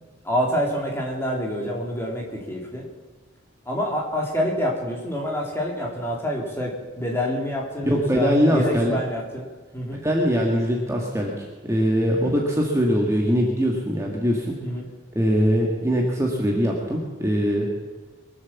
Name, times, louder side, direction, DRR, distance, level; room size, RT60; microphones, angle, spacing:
voice 1, 0.2-2.9 3.7-6.7 7.0-9.5 9.7-10.0 12.1-12.3 14.6-14.9, equal, 10° left, -1 dB, 2.7 m, -27 dB
voice 2, 7.9-9.0 10.0-14.5 15.2-17.7, equal, 15° right, -1 dB, 1.7 m, -22 dB
22.5 x 7.9 x 7.2 m, 1.3 s
head